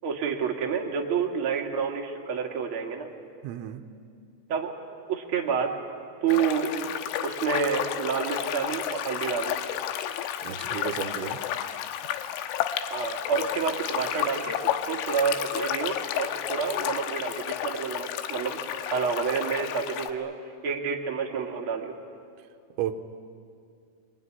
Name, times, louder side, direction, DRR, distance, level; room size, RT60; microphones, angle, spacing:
voice 1, 0.0-3.1 4.5-4.8 5.1-5.7 6.2-6.7 7.2-9.6 12.9-20.3 20.6-21.9, right 6 dB, 60° right, 1 dB, 1.4 m, -29 dB
voice 2, 3.4-3.8 10.4-11.4 22.8-23.0, right 11 dB, 85° right, 5 dB, 3.2 m, -33 dB
sound 1, 6.3-20.1, left 11 dB, 90° left, 3.5 m, -31 dB
24.0 x 23.5 x 9.8 m, 2.4 s
omnidirectional pair, 5.5 m